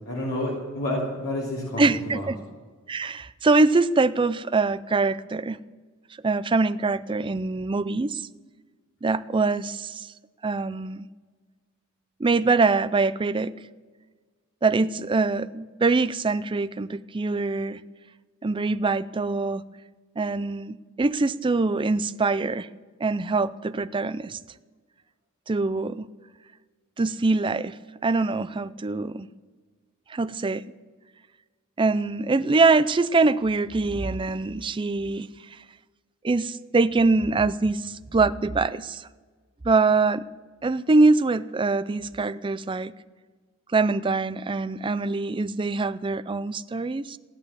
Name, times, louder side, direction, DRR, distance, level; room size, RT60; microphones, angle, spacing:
voice 1, 0.1-2.3, left 1 dB, 75° left, -5 dB, 3.0 m, -29 dB
voice 2, 1.8-2.4 2.9-5.6 6.2-8.2 9.0-10.1 10.4-11.1 12.2-13.5 14.6-17.8 18.4-19.6 20.2-22.7 23.0-24.4 25.5-26.1 27.0-27.7 28.0-29.3 30.1-30.6 31.8-35.3 36.2-39.1 39.6-40.2 40.6-42.9 43.7-47.2, right 3 dB, 20° right, 14 dB, 0.4 m, -23 dB
16.5 x 11.0 x 7.4 m, 1.4 s
head